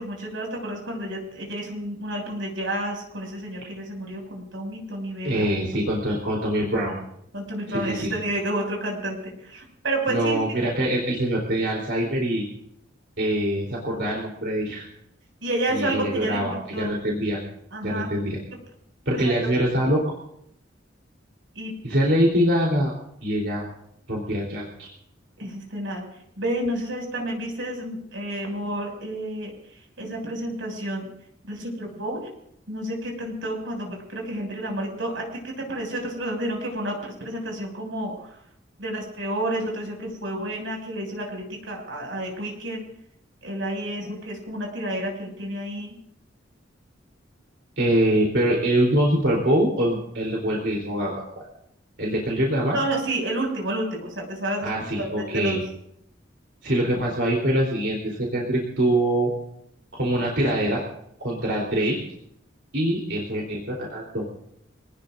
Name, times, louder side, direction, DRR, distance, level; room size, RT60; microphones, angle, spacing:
voice 1, 0.0-5.5 7.3-10.4 15.4-16.9 17.7-18.1 19.1-19.5 21.5-21.7 25.4-26.0 26.4-31.0 31.4-32.3 32.7-38.4 38.8-42.9 43.4-45.9 52.7-55.6, right 1 dB, 85° right, 0 dB, 6.6 m, -30 dB
voice 2, 5.2-7.0 7.7-8.1 10.1-12.5 13.2-14.8 15.7-17.4 17.8-18.4 19.1-20.1 21.8-22.9 23.2-23.6 24.1-24.9 47.8-51.2 52.0-52.8 54.6-55.6 56.6-59.3 60.0-60.8 61.2-62.0 62.7-64.2, right 1 dB, 65° right, -2 dB, 3.8 m, -24 dB
26.0 x 19.0 x 2.7 m, 0.73 s
head